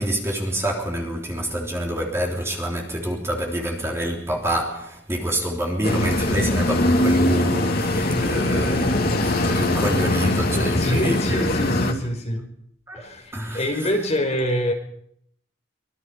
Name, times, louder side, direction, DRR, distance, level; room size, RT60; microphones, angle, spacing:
voice 1, 0.0-11.4 12.9-13.7, equal, 15° right, 3.6 m, -27 dB
sound 1, 5.8-11.9, left 1 dB, 50° left, 2.6 m, -22 dB
voice 2, 10.6-12.5 12.9-14.7, equal, 35° left, 5.1 m, -25 dB
25.0 x 22.5 x 5.4 m
head